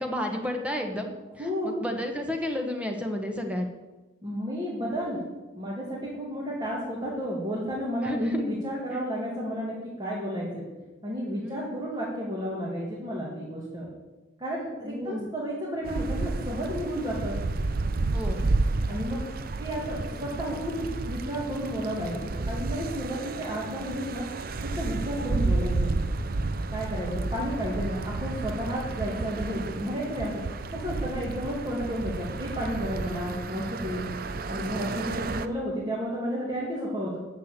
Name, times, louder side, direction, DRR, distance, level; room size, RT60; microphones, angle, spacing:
voice 1, 0.0-3.7 8.0-8.4 8.9-9.0 11.3-11.6 14.8-15.3 18.1-18.4, left 1 dB, 5° right, 3 dB, 1.3 m, -32 dB
voice 2, 1.4-1.7 4.2-5.2 5.6-10.7 11.0-13.9 14.4-17.4 18.9-19.2 19.6-24.3 24.6-25.9 26.7-30.4 30.7-34.1 34.5-37.2, equal, 20° right, -6 dB, 2.4 m, -32 dB
sound 1, 15.9-35.5, right 3 dB, 45° right, 0.5 m, -31 dB
10.5 x 6.9 x 8.2 m, 1.2 s
head